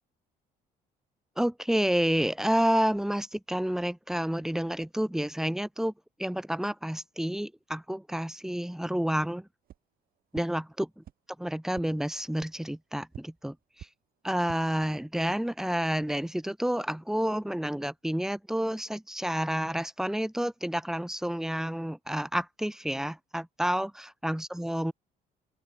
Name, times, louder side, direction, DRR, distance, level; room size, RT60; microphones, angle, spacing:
voice 1, 1.4-5.9 6.2-9.5 10.3-11.0 11.4-13.6 14.2-24.9, equal, 5° right, 3.0 m, -29 dB
sound 1, 9.6-9.8 10.3-10.4 11.0-11.1 11.7-11.8 12.4-12.5 13.1-13.2 13.8-13.9 14.3-14.6, right 11 dB, 60° right, 3.1 m, -44 dB
open air
cardioid pair, 110°, 17 cm